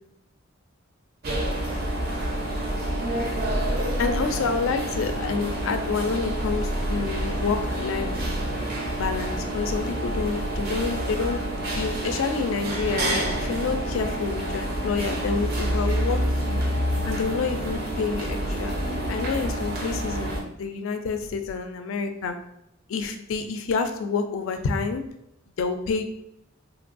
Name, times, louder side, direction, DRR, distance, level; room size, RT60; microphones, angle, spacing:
sound 1, 1.2-20.4, right 1 dB, 50° right, 0.5 m, -28 dB
voice 1, 4.0-8.1 8.9-11.4 11.8-16.2 16.5-16.6 17.1-18.7 19.1-22.4 22.9-25.0 25.6-26.0, left 5 dB, 70° left, 7 dB, 0.3 m, -28 dB
3.0 x 2.2 x 2.5 m, 0.80 s
head